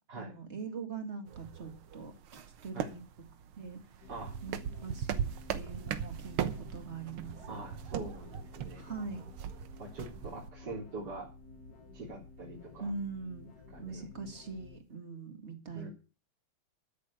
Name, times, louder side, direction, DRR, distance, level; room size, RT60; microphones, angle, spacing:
voice 1, 0.2-3.0 3.6-4.1 4.4-7.6 8.8-9.2 12.8-13.5 13.8-15.9, right 4 dB, 30° right, 6 dB, 2.1 m, -42 dB
sound 1, 1.3-10.5, right 8 dB, 85° right, 1.9 m, -39 dB
sound 2, 4.0-14.8, left 3 dB, 50° left, 1.8 m, -53 dB
voice 2, 7.5-8.8 9.8-11.3 11.9-12.8 13.7-14.0 15.7-15.9, right 2 dB, 50° right, -3 dB, 4.0 m, -43 dB
12.5 x 6.8 x 8.2 m, 0.32 s
omnidirectional pair, 2.3 m